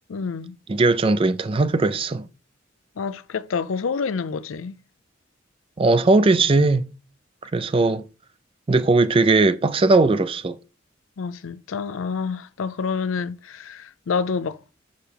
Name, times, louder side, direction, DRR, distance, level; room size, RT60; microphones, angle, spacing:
voice 1, 0.1-0.6 3.0-4.8 11.2-14.7, left 5 dB, 90° left, 0.5 m, -28 dB
voice 2, 0.7-2.3 5.8-6.9 7.5-8.0 8.7-10.6, right 3 dB, 25° right, 0.4 m, -19 dB
6.4 x 5.7 x 3.4 m
head